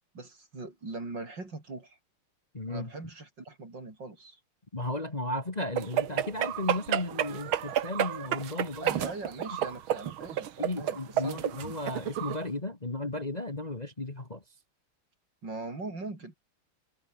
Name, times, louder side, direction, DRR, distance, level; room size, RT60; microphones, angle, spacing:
voice 1, 0.1-2.0 2.7-4.4 8.8-11.7 15.4-16.4, right 3 dB, 55° right, 6.0 m, -41 dB
voice 2, 2.5-2.9 4.7-9.0 10.6-14.4, left 2 dB, 20° left, 1.9 m, -35 dB
sound 1, 5.8-12.4, right 10 dB, 80° right, 2.0 m, -31 dB
omnidirectional pair, 2.3 m